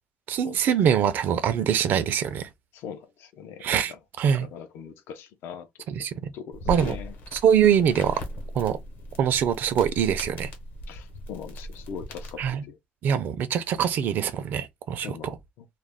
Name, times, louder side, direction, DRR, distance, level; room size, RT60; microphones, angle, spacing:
voice 1, 0.3-2.5 3.6-4.5 5.9-6.2 6.7-7.0 7.3-8.2 8.5-8.8 9.2-10.5 12.4-12.6 13.0-15.3, right 8 dB, 60° right, 0.4 m, -23 dB
voice 2, 2.7-4.0 4.4-6.1 6.3-7.1 10.9-12.8 15.0-15.7, left 7 dB, 80° left, 0.5 m, -41 dB
sound 1, 6.5-12.5, left 1 dB, 65° left, 0.9 m, -38 dB
2.3 x 2.1 x 3.4 m
cardioid pair, 160°, 4 cm